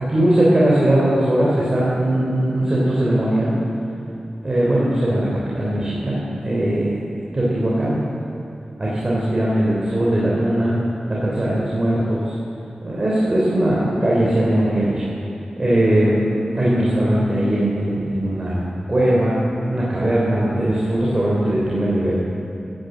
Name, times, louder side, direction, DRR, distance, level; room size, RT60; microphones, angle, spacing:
voice 1, 0.0-3.5 4.4-6.9 7.3-8.0 8.8-10.8 11.1-12.3 12.8-15.1 15.6-16.2 16.5-18.6 18.9-19.4 19.7-22.1, right 1 dB, 35° right, -6 dB, 3.4 m, -19 dB
14.5 x 10.5 x 7.9 m, 2.8 s
wide cardioid pair, 105°, 2 cm